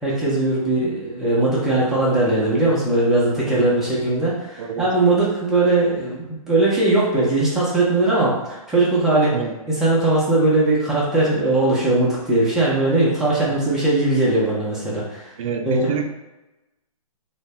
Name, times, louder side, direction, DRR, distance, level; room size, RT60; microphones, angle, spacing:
voice 1, 0.0-9.3 9.8-15.3 15.7-15.8, right 2 dB, 5° right, -7 dB, 0.5 m, -19 dB
voice 2, 3.4-3.8 4.6-4.9 9.3-9.6 13.5-13.6 15.4-16.0, right 7 dB, 65° right, 5 dB, 0.4 m, -28 dB
2.6 x 2.2 x 3.1 m, 1.0 s
hypercardioid pair, 150°, 19 cm